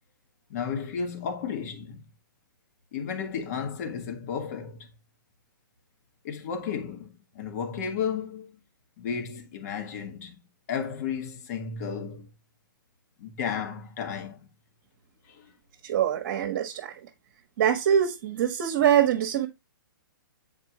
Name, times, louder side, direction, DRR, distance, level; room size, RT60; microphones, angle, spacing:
voice 1, 0.5-2.0 2.9-4.9 6.2-8.6 9.0-10.4 10.7-12.3 13.2-14.4 15.3-15.5, left 6 dB, 50° left, 1.4 m, -33 dB
voice 2, 15.8-16.9 17.6-19.5, right 9 dB, 50° right, 1.0 m, -24 dB
7.4 x 4.4 x 2.9 m
hypercardioid pair, 135°, 11 cm